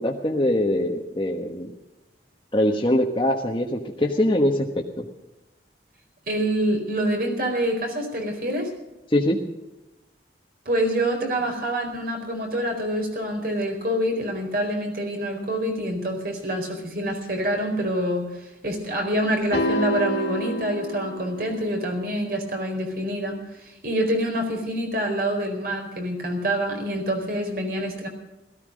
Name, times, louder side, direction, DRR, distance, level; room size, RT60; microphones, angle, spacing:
voice 1, 0.0-1.7 2.5-5.0 9.1-9.4, left 1 dB, 30° left, -1 dB, 1.3 m, -23 dB
voice 2, 6.3-8.7 10.7-28.1, right 1 dB, 55° right, 3 dB, 4.4 m, -26 dB
sound 1, 19.5-21.9, equal, 65° left, 2.5 m, -28 dB
17.5 x 14.5 x 5.2 m, 0.98 s
head